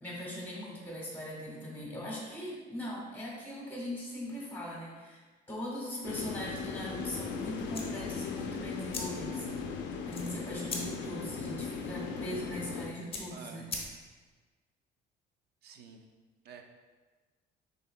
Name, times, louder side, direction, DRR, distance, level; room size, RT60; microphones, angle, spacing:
voice 1, 0.0-5.2 5.5-9.6 10.1-13.7, left 1 dB, 10° left, -4 dB, 1.4 m, -40 dB
sound 1, 6.0-12.9, left 5 dB, 75° left, 0.5 m, -38 dB
sound 2, 7.7-14.3, left 3 dB, 30° left, 0.8 m, -44 dB
voice 2, 13.3-13.7 15.6-16.0 16.4-16.6, right 6 dB, 60° right, 5 dB, 0.5 m, -49 dB
5.5 x 3.8 x 2.2 m, 1.3 s
cardioid pair, 110°, 19 cm